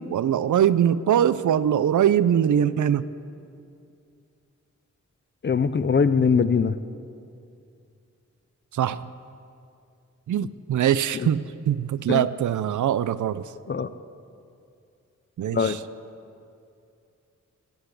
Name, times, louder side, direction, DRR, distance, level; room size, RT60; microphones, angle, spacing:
voice 1, 0.0-3.0 8.7-9.0 10.3-13.5 15.4-15.8, right 9 dB, 80° right, 16 dB, 0.5 m, -22 dB
voice 2, 5.4-6.8 10.4-10.5 11.1-11.3 12.1-12.3 13.7-13.9 15.5-15.8, left 5 dB, 40° left, 13 dB, 0.5 m, -22 dB
19.5 x 8.1 x 8.3 m, 2.5 s
wide cardioid pair, 115°, 30 cm